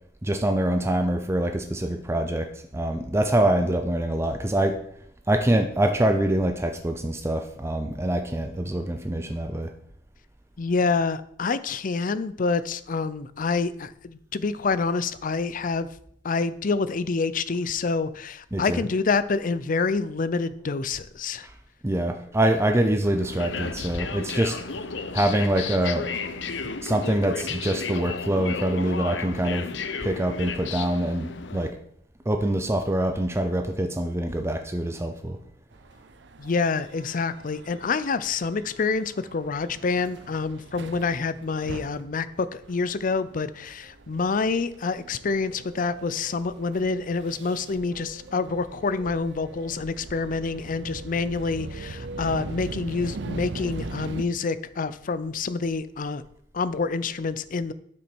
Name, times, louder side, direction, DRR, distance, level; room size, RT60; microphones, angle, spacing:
voice 1, 0.2-4.8 5.3-9.7 18.5-18.8 21.4-21.5 21.8-24.6 25.1-26.1 26.6-31.8 32.3-35.4, right 1 dB, 15° right, 6 dB, 0.6 m, -25 dB
voice 2, 10.6-15.9 16.2-21.5 36.4-56.2 56.5-57.7, left 4 dB, 50° left, 15 dB, 0.5 m, -27 dB
sound 1, 23.0-31.7, left 5 dB, 80° left, 0.7 m, -33 dB
sound 2, 35.7-54.3, right 3 dB, 70° right, 0.6 m, -41 dB
12.0 x 6.1 x 4.6 m, 0.69 s
head